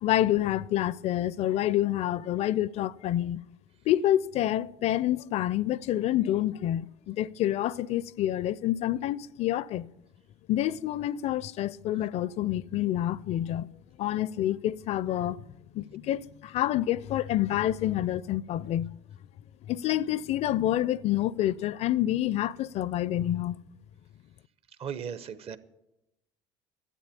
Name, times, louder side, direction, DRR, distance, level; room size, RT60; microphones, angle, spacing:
voice 1, 0.0-3.4 3.9-9.9 10.5-13.7 14.0-15.4 15.7-18.9 19.7-23.6, left 13 dB, 50° left, 0.4 m, -28 dB
voice 2, 24.8-25.6, right 7 dB, 45° right, 0.9 m, -36 dB
13.0 x 8.6 x 8.3 m
hypercardioid pair, 65°, 14 cm